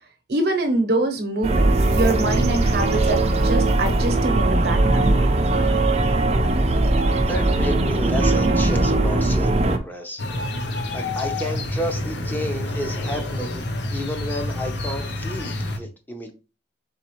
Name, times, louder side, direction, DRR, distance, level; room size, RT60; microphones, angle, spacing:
voice 1, 0.3-5.1, right 2 dB, 60° right, 6 dB, 0.8 m, -24 dB
sound 1, 1.4-9.8, right 2 dB, 35° right, 0.5 m, -19 dB
voice 2, 7.3-10.2 10.9-13.6 13.9-16.3, equal, 10° left, 3 dB, 0.7 m, -31 dB
sound 2, 10.2-15.8, left 2 dB, 65° left, 0.7 m, -28 dB
4.0 x 3.8 x 3.0 m, 0.31 s
head